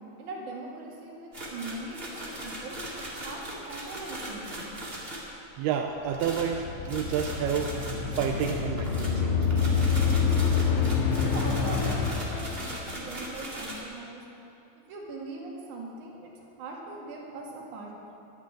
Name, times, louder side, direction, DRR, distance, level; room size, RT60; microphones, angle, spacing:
voice 1, 0.2-4.7 11.1-14.2 14.7-18.2, right 2 dB, 50° right, -2 dB, 3.0 m, -41 dB
sound 1, 1.3-5.3 6.1-13.8, right 1 dB, 30° right, 1.1 m, -39 dB
voice 2, 5.6-7.7 8.2-9.4, right 8 dB, 85° right, 3 dB, 2.4 m, -29 dB
sound 2, 6.2-13.1, left 5 dB, 90° left, 3.5 m, -27 dB
12.5 x 10.5 x 8.8 m, 2.8 s
omnidirectional pair, 5.2 m